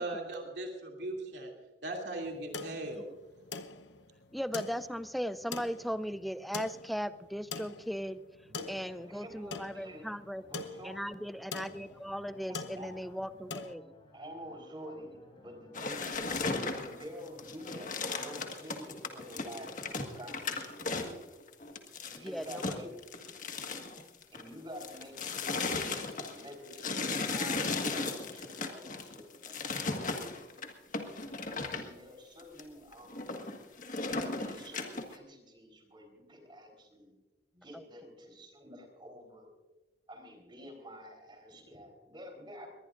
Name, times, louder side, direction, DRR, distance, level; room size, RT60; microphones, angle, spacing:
voice 1, 0.0-1.5 1.8-3.0, right 2 dB, 70° right, 1 dB, 2.7 m, -38 dB
sound 1, 2.2-13.7, left 4 dB, 85° left, 0.9 m, -44 dB
voice 2, 4.3-8.2 8.7-10.4 10.8-13.9 22.2-22.6 37.7-37.8, equal, ahead, 13 dB, 0.4 m, -38 dB
voice 3, 8.4-10.0 10.5-11.0 12.3-13.1 14.1-16.4 16.8-21.3 22.1-23.3 24.3-30.6 31.2-33.4 34.1-37.1 37.5-39.5 40.1-42.7, equal, 25° right, 3 dB, 3.9 m, -49 dB
sound 2, 8.6-17.5, left 1 dB, 30° left, 4.8 m, -60 dB
sound 3, 15.7-24.5 24.8-31.9 32.4-32.6 32.9-35.2, left 3 dB, 45° left, 1.6 m, -36 dB
22.0 x 20.0 x 2.5 m, 1.1 s
head